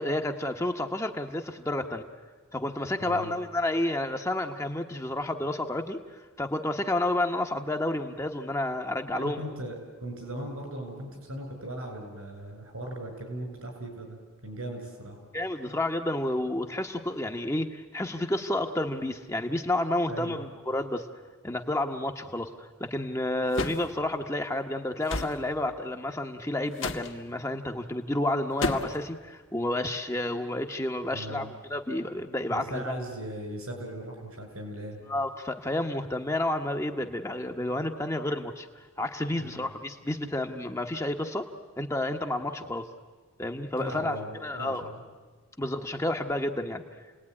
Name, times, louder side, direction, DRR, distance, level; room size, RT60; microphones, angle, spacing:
voice 1, 0.0-2.1 2.5-6.0 6.4-9.4 15.3-21.1 21.4-32.9 35.1-41.5 41.8-42.9 43.4-44.2 44.4-44.8 45.6-46.8, left 1 dB, 15° left, 4 dB, 1.2 m, -30 dB
voice 2, 3.0-3.3 9.1-15.2 20.1-20.4 31.1-31.5 32.5-35.0 39.4-39.7 43.8-45.0, right 1 dB, 85° right, 4 dB, 7.6 m, -38 dB
sound 1, 23.5-23.9 25.1-25.4 26.8-27.1 28.6-29.0, left 2 dB, 60° left, 1.7 m, -30 dB
29.0 x 19.5 x 9.9 m, 1.5 s
head